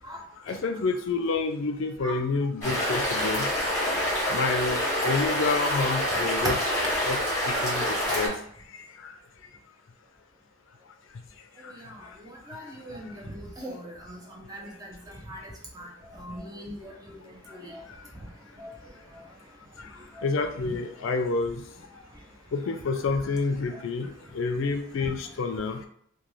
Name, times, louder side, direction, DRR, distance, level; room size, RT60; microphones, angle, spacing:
voice 1, 0.5-3.9 4.2-6.6 7.0-7.2 7.5-8.3 8.7-9.1 11.6-11.7 20.2-21.6 22.5-25.8, left 4 dB, 65° left, 5 dB, 0.4 m, -29 dB
sound 1, 2.6-8.3, equal, 10° left, 1.1 m, -27 dB
voice 2, 11.6-12.0 12.2-14.2 14.5-14.9 15.3-17.1 17.5-17.8 18.6-18.7 20.2-20.3, equal, 20° right, -1 dB, 0.5 m, -41 dB
2.5 x 2.2 x 3.0 m, 0.67 s
head